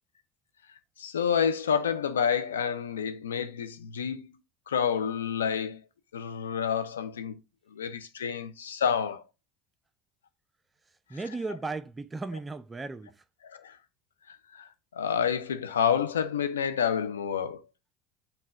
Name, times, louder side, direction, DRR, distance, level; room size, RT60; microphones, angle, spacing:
voice 1, 1.0-4.3 4.7-5.8 6.1-7.4 7.7-9.2 13.4-13.8 14.3-14.7 14.9-17.6, left 7 dB, 90° left, 0.3 m, -29 dB
voice 2, 11.1-13.2, right 3 dB, 20° right, 0.3 m, -36 dB
5.5 x 2.1 x 3.5 m
hypercardioid pair, 75°, 0 cm